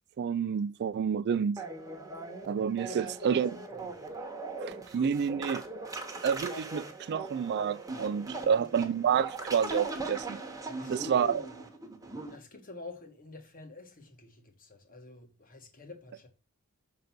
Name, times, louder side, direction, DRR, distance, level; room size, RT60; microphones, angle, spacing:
voice 1, 0.2-1.6 2.4-3.5 4.6-5.6 6.2-10.4 10.9-11.4, right 7 dB, 50° right, 0.3 m, -29 dB
sound 1, 1.6-12.4, right 3 dB, 15° right, 1.3 m, -40 dB
voice 2, 2.4-3.4 3.7-4.1 8.3-8.7 10.8-11.7 12.3-16.3, left 2 dB, 40° left, 1.5 m, -48 dB
6.8 x 3.9 x 5.8 m
head